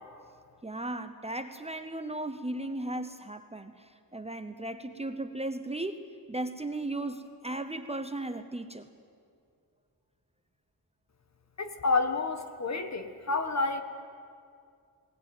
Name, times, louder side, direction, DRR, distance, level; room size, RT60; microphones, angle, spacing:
voice 1, 0.6-8.9, right 2 dB, 15° right, 8 dB, 0.8 m, -36 dB
voice 2, 11.6-13.8, left 3 dB, 45° left, 7 dB, 1.5 m, -29 dB
21.0 x 18.5 x 9.4 m, 2.3 s
wide cardioid pair, 165°, 37 cm